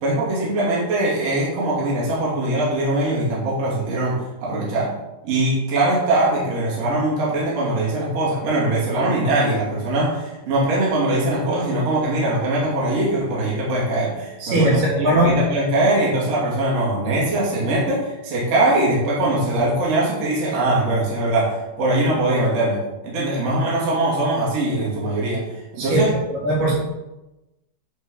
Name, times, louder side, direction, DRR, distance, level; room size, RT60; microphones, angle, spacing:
voice 1, 0.0-4.9 5.2-26.1, right 1 dB, 45° right, -6 dB, 3.4 m, -21 dB
voice 2, 14.4-15.3 25.8-26.0 26.4-26.7, right 1 dB, 75° right, -6 dB, 5.6 m, -19 dB
9.7 x 5.3 x 5.6 m, 1.0 s
omnidirectional pair, 4.5 m